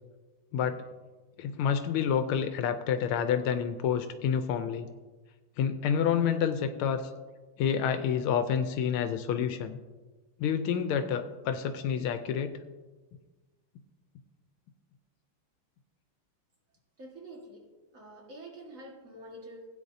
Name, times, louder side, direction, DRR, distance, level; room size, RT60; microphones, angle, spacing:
voice 1, 0.5-0.8 1.4-4.9 5.6-7.1 7.6-9.8 10.4-12.6, left 7 dB, 85° left, 8 dB, 1.5 m, -28 dB
voice 2, 17.0-19.7, right 1 dB, 40° right, 0 dB, 2.0 m, -47 dB
16.5 x 8.9 x 2.7 m, 1.3 s
omnidirectional pair, 2.3 m